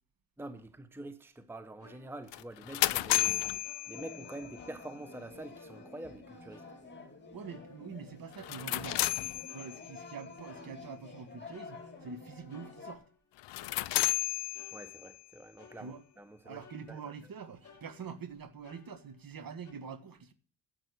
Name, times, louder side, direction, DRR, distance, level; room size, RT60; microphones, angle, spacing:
voice 1, 0.4-3.4 3.9-6.6 14.7-16.6 16.9-17.0, right 1 dB, 5° right, 0.9 m, -46 dB
sound 1, 1.8-3.3 3.6-4.3 4.6-5.2 5.5-6.1 6.5-8.2 8.5-9.2 9.4-10.2 10.4-11.1 11.5-13.2 13.5-14.2 14.5-15.3 15.6-16.3 16.6-17.3 17.6-19.4 19.6-19.7, left 5 dB, 40° left, 2.7 m, -60 dB
sound 2, 2.3-4.6 8.3-10.0 13.4-15.2, left 16 dB, 65° left, 0.6 m, -32 dB
sound 3, 3.9-13.0, left 3 dB, 25° left, 2.8 m, -50 dB
voice 2, 7.3-9.1 9.5-13.0 15.8-16.0 16.4-20.3, right 6 dB, 45° right, 1.5 m, -45 dB
9.0 x 7.6 x 8.4 m
cardioid pair, 75°, 46 cm